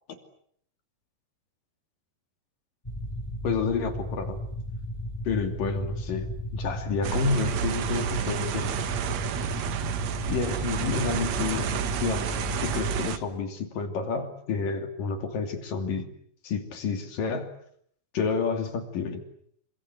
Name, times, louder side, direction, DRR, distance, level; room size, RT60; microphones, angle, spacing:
sound 1, 2.8-13.0, equal, 5° left, 4.6 m, -35 dB
voice 1, 3.4-4.4 5.2-6.3 6.5-8.8 10.3-12.3 12.6-16.1 16.4-17.5 18.1-19.2, left 5 dB, 55° left, 7 dB, 4.2 m, -29 dB
sound 2, 7.0-13.2, right 8 dB, 65° right, 1.7 m, -30 dB
28.5 x 25.5 x 8.3 m, 0.66 s
omnidirectional pair, 5.0 m